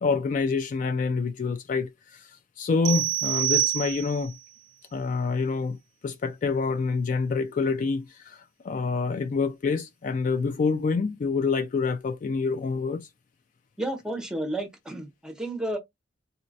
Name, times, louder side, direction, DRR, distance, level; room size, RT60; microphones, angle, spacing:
voice 1, 0.0-2.3 2.6-4.4 4.9-5.8 6.0-13.1, left 4 dB, 45° left, 0.3 m, -27 dB
sound 1, 2.8-4.4, right 14 dB, 80° right, 0.4 m, -26 dB
voice 2, 13.8-15.8, right 1 dB, 5° right, 0.7 m, -31 dB
3.9 x 2.1 x 2.6 m
head